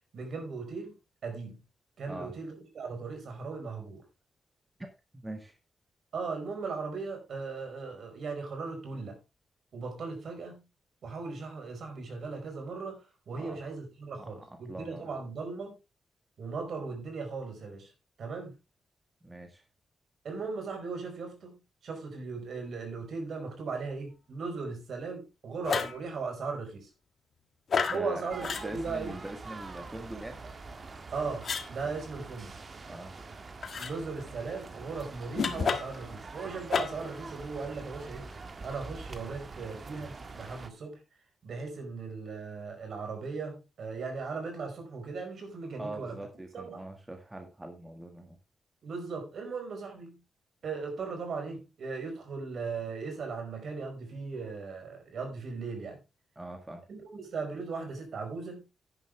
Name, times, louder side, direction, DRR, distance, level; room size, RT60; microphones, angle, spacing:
voice 1, 0.1-1.0 1.2-1.6 2.0-4.0 6.1-9.2 9.7-10.6 11.0-15.8 16.4-17.9 18.2-18.5 20.2-21.5 21.8-26.9 27.9-29.2 31.1-32.6 33.8-38.3 38.6-41.0 41.4-46.2 46.5-46.8 48.8-50.2 50.6-56.0 56.9-58.7, right 4 dB, 60° right, 4.9 m, -38 dB
voice 2, 5.1-5.5 13.3-13.6 14.2-15.1 19.2-19.6 27.9-30.5 32.9-33.1 45.8-48.4 56.4-56.8, right 1 dB, 15° right, 1.8 m, -42 dB
sound 1, 25.6-26.0 27.7-28.0 28.4-28.7 31.4-31.7 33.6-33.9 35.3-36.0 36.7-37.1, left 5 dB, 50° left, 1.6 m, -30 dB
sound 2, 28.3-40.7, right 3 dB, 35° right, 1.6 m, -45 dB
11.0 x 10.0 x 3.4 m
wide cardioid pair, 135°, 0 cm